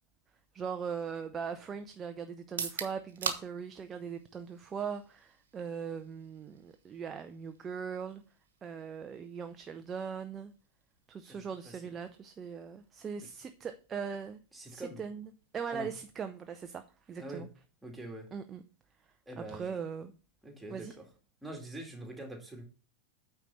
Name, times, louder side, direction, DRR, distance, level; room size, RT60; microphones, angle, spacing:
voice 1, 0.5-8.2 8.6-10.5 11.1-17.5 18.3-18.6 19.4-20.1 20.7-20.9, right 6 dB, 20° right, 8 dB, 0.6 m, -40 dB
sound 1, 2.4-16.3, right 7 dB, 65° right, 1.3 m, -46 dB
voice 2, 11.3-11.9 14.5-15.0 15.7-15.9 17.2-17.5 17.8-18.3 19.3-19.8 20.4-21.0 21.4-22.6, right 1 dB, 5° right, 1 dB, 2.4 m, -44 dB
9.1 x 4.6 x 5.4 m, 0.36 s
figure-of-eight pair, 90°, 0 cm